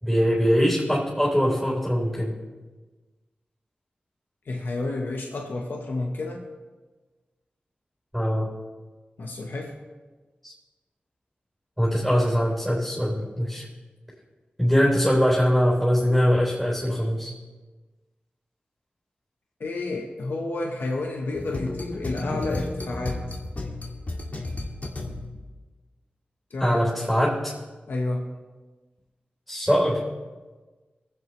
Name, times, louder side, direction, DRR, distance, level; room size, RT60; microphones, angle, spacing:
voice 1, 0.0-2.3 8.1-8.5 10.4-10.5 11.8-13.6 14.6-17.3 26.6-27.4 29.5-30.0, equal, 5° left, -5 dB, 4.0 m, -22 dB
voice 2, 4.4-6.5 9.2-9.8 19.6-23.4 26.5-26.8 27.9-28.3, left 2 dB, 80° left, 1 dB, 1.1 m, -30 dB
sound 1, 21.4-25.5, left 2 dB, 45° left, 1.9 m, -33 dB
23.0 x 8.0 x 3.2 m, 1.3 s
cardioid pair, 60°, 3 cm